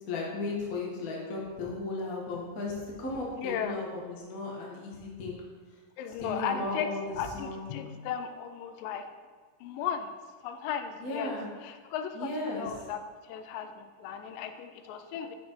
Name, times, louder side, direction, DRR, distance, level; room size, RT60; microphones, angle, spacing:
voice 1, 0.1-5.4 6.2-7.6 11.0-11.4 12.1-12.7, left 2 dB, 60° left, -2 dB, 0.9 m, -35 dB
voice 2, 3.4-3.8 6.0-6.9 7.2-9.1 9.6-10.2 10.4-11.4 11.6-15.4, left 8 dB, 85° left, 8 dB, 2.2 m, -36 dB
7.4 x 5.9 x 4.5 m, 1.5 s
omnidirectional pair, 4.0 m